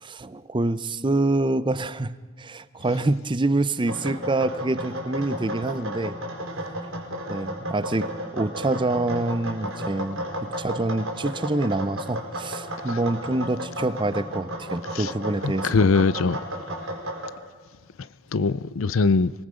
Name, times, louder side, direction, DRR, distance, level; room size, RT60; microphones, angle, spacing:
voice 1, 0.0-6.2 7.3-10.2 10.6-15.9, right 2 dB, 25° right, 0.6 m, -26 dB
sound 1, 3.8-17.3, equal, 80° right, 4.0 m, -33 dB
voice 2, 15.4-16.4 18.3-19.3, left 4 dB, 80° left, 0.6 m, -21 dB
26.0 x 20.0 x 5.1 m
head